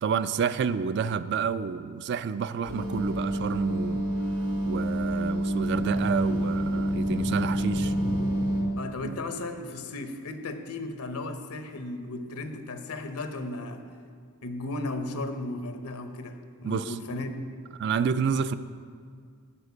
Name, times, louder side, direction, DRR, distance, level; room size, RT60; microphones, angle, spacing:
voice 1, 0.0-4.1 4.7-7.9 9.0-9.2 16.6-17.0 17.8-18.6, right 6 dB, 50° right, 13 dB, 0.3 m, -29 dB
sound 1, 2.7-8.6, right 1 dB, 70° right, 2.7 m, -28 dB
sound 2, 5.5-9.3, left 3 dB, 35° left, 0.4 m, -37 dB
voice 2, 8.8-13.9 14.4-17.5, left 2 dB, 80° left, 7 dB, 0.9 m, -35 dB
11.5 x 4.5 x 8.2 m, 2.1 s
head